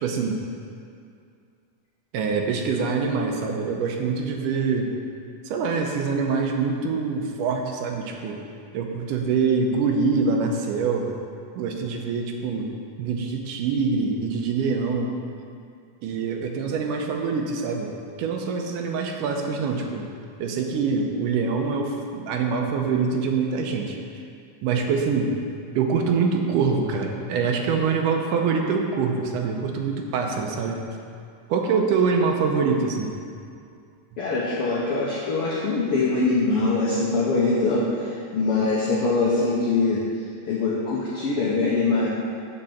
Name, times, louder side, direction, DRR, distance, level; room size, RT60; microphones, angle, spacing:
voice 1, 0.0-0.4 2.1-4.9 5.5-8.4 8.7-11.2 11.6-12.7 13.0-15.1 16.0-20.1 20.4-24.0 24.6-25.3 25.7-30.8 31.5-33.1, right 5 dB, 80° right, 2 dB, 2.2 m, -24 dB
voice 2, 34.2-40.0 40.4-42.1, left 3 dB, 80° left, -6 dB, 1.3 m, -23 dB
6.5 x 5.5 x 7.1 m, 2.4 s
omnidirectional pair, 3.8 m